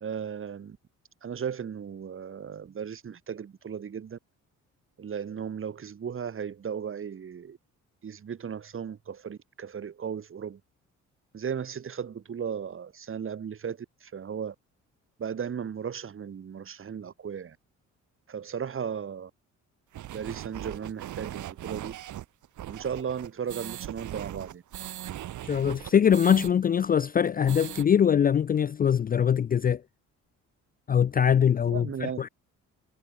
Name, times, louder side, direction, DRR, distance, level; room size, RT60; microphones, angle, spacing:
voice 1, 0.0-0.8 1.2-4.2 5.0-7.6 8.0-10.6 11.3-14.6 15.2-17.6 18.3-19.3 20.1-22.0 22.7-24.6 31.6-32.3, right 7 dB, 45° right, 2.0 m, -36 dB
sound 1, 19.9-26.5 26.8-26.9 27.2-27.9, right 12 dB, 75° right, 3.9 m, -39 dB
voice 2, 25.4-29.8 30.9-32.3, left 8 dB, 30° left, 0.4 m, -23 dB
cardioid pair, 90°, 30 cm